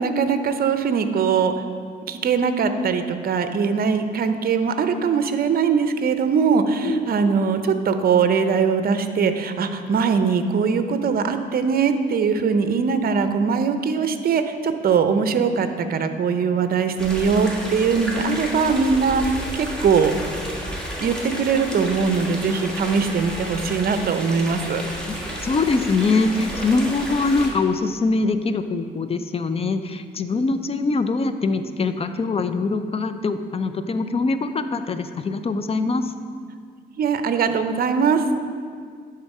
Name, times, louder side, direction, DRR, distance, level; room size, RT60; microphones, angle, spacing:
voice 1, 0.0-1.5 2.1-20.3 21.0-24.8 37.0-38.2, right 5 dB, 50° right, 8 dB, 0.6 m, -21 dB
sound 1, 17.0-27.5, equal, 5° left, 1.6 m, -32 dB
voice 2, 25.4-36.1, left 3 dB, 30° left, 10 dB, 0.5 m, -23 dB
10.5 x 3.8 x 5.4 m, 2.1 s
cardioid pair, 90°, 20 cm